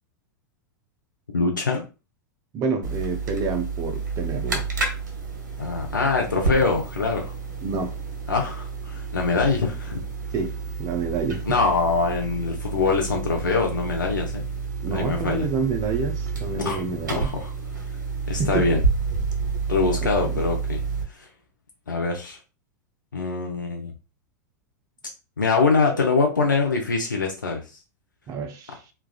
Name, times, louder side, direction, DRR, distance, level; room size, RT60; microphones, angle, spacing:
voice 1, 1.3-1.8 5.6-7.3 8.3-10.0 11.4-14.4 14.9-15.5 16.6-16.8 17.2-17.5 18.3-18.8 19.7-20.8 21.1-21.3 21.9-22.4 23.1-23.9 25.4-27.8, left 4 dB, 90° left, 0.6 m, -24 dB
voice 2, 2.5-4.7 7.6-8.0 10.3-11.4 14.8-17.3 18.4-18.8 20.2-20.4 28.3-28.8, right 4 dB, 35° right, 0.5 m, -28 dB
sound 1, 2.8-21.0, right 4 dB, 75° right, 0.9 m, -30 dB
3.2 x 2.3 x 2.3 m
figure-of-eight pair, 95°, 10 cm